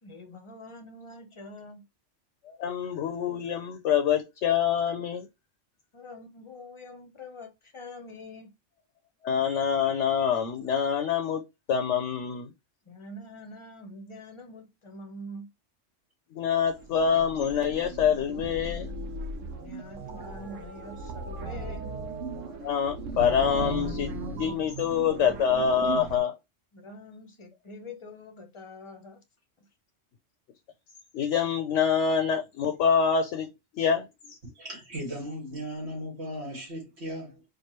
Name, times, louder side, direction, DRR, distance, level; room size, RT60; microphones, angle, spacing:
voice 1, 0.0-1.8 5.9-8.5 12.8-15.5 19.4-21.9 26.7-29.2 29.6-29.7, left 2 dB, 30° left, 0.7 m, -45 dB
voice 2, 2.5-5.3 9.2-11.4 11.7-12.5 16.3-18.9 22.6-26.3 31.1-34.4, left 7 dB, 75° left, 0.9 m, -26 dB
sound 1, 16.7-26.2, right 2 dB, 90° right, 1.1 m, -37 dB
voice 3, 34.5-37.4, equal, 60° right, 2.2 m, -37 dB
4.6 x 2.6 x 3.0 m
omnidirectional pair, 1.3 m